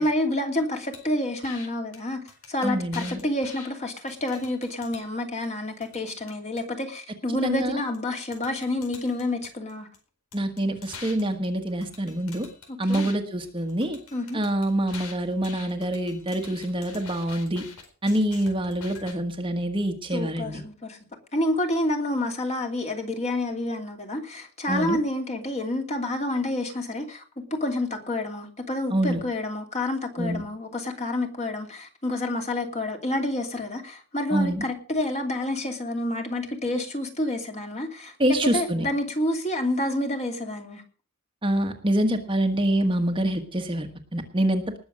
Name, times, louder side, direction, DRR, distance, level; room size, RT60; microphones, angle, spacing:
voice 1, 0.0-9.9 12.7-13.1 14.1-14.4 20.1-21.0 21.3-27.2 27.5-38.1 38.5-40.8, left 1 dB, 30° left, 3 dB, 2.8 m, -28 dB
sound 1, 0.9-1.1 1.4-1.7 1.9-2.0 2.3-3.7 4.1-5.1 5.4-6.6 7.9-8.0 8.3-10.0 10.3-13.1 13.4-19.1, left 5 dB, 80° left, 4.5 m, -45 dB
voice 2, 2.6-3.2 7.4-7.8 10.3-12.5 12.8-14.0 14.3-17.6 18.0-20.6 24.7-25.0 28.9-29.2 30.2-30.4 34.3-34.6 38.2-38.9 41.4-44.8, right 1 dB, 25° right, 5 dB, 1.4 m, -26 dB
19.5 x 7.1 x 6.3 m, 0.38 s
head